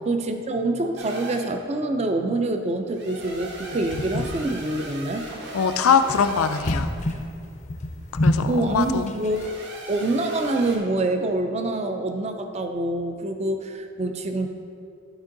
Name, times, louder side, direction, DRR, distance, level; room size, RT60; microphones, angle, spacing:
voice 1, 0.1-5.3 8.5-9.6 9.9-14.5, right 2 dB, 30° right, 6 dB, 0.4 m, -26 dB
sound 1, 1.0-1.5 2.9-6.7 9.2-10.8, right 2 dB, 50° right, 1.0 m, -38 dB
sound 2, 3.2-9.5, left 1 dB, 35° left, 0.5 m, -29 dB
voice 2, 5.5-6.9 8.2-9.1, left 6 dB, 85° left, 9 dB, 0.4 m, -22 dB
11.0 x 4.5 x 3.9 m, 2.5 s
head